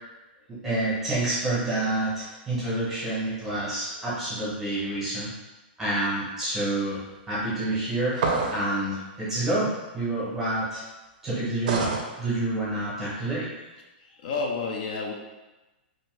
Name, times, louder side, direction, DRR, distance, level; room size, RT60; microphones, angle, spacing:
voice 1, 0.6-5.3 5.8-7.0 7.3-8.2 8.5-10.8 11.2-11.9 12.2-13.5, right 2 dB, 5° right, -9 dB, 0.8 m, -28 dB
sound 1, 8.1-8.7 11.7-12.1, right 4 dB, 50° right, 0.4 m, -26 dB
voice 2, 14.0-15.1, left 4 dB, 55° left, 0 dB, 0.4 m, -30 dB
2.7 x 2.5 x 3.1 m, 1.1 s
supercardioid pair, 180°, 6 cm